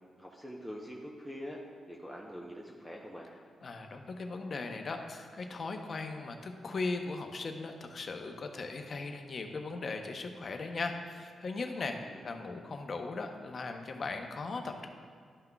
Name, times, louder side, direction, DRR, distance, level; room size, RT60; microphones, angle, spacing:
voice 1, 0.2-1.6 1.9-3.3 12.0-12.3, equal, 5° right, -2 dB, 0.7 m, -44 dB
voice 2, 3.6-12.0 12.2-14.9, left 3 dB, 45° left, 4 dB, 0.7 m, -38 dB
12.0 x 5.8 x 2.3 m, 2.1 s
cardioid pair, 110°, 0 cm